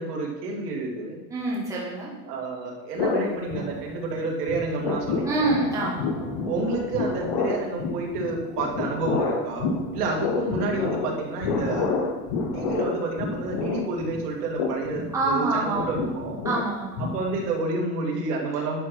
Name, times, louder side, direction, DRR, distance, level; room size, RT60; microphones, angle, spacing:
voice 1, 0.0-1.2 2.3-5.6 6.4-9.7 9.9-11.9 12.5-16.4 17.0-18.8, right 3 dB, 75° right, 0 dB, 2.4 m, -29 dB
voice 2, 1.3-2.1 5.2-6.2 15.1-15.9 16.4-17.1, right 2 dB, 5° right, -5 dB, 1.4 m, -26 dB
sound 1, 3.0-4.2 4.5-17.6, left 4 dB, 25° left, 0.4 m, -29 dB
10.5 x 6.0 x 4.4 m, 1.2 s
supercardioid pair, 170°, 47 cm